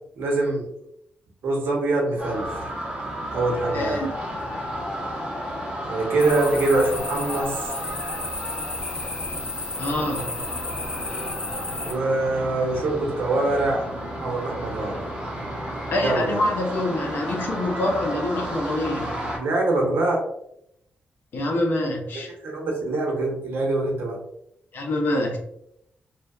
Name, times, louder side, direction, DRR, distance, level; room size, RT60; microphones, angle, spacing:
voice 1, 0.2-0.7 1.4-2.6 3.3-4.1 5.9-7.7 11.8-13.9 14.2-15.0 16.0-16.4 19.3-20.2 22.4-24.2, right 2 dB, 75° right, 0 dB, 0.8 m, -24 dB
sound 1, 2.2-19.4, equal, 25° right, 0.8 m, -32 dB
voice 2, 3.7-4.1 9.8-10.3 15.9-19.2 21.3-22.3 24.7-25.4, left 1 dB, 65° left, 1 dB, 0.7 m, -25 dB
sound 2, 6.2-11.9, left 3 dB, 25° left, 0.3 m, -33 dB
2.7 x 2.2 x 2.3 m, 0.76 s
wide cardioid pair, 125°, 4 cm